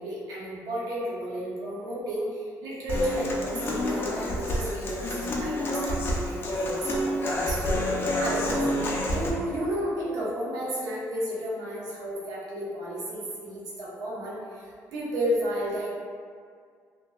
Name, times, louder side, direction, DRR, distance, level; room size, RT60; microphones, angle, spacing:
voice 1, 0.0-8.6 9.1-15.9, equal, 80° right, -7 dB, 0.7 m, -32 dB
Human voice / Acoustic guitar, 2.9-9.3, left 1 dB, 35° left, 0.3 m, -28 dB
2.5 x 2.2 x 2.2 m, 2.1 s
cardioid pair, 145°, 6 cm